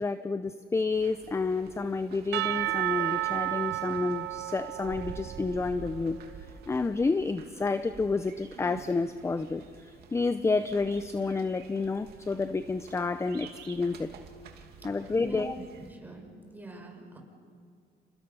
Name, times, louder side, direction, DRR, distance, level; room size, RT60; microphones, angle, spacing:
voice 1, 0.0-6.2 6.7-14.1 14.8-15.6, left 3 dB, 15° left, 11 dB, 0.6 m, -30 dB
sound 1, 0.9-15.9, right 7 dB, 70° right, 2.7 m, -49 dB
Percussion / Church bell, 2.3-6.3, right 16 dB, 90° right, 0.8 m, -32 dB
voice 2, 15.2-16.3 16.5-17.2, right 2 dB, 10° right, 1 dB, 5.8 m, -43 dB
30.0 x 29.0 x 5.6 m, 2.3 s
cardioid pair, 110°, 17 cm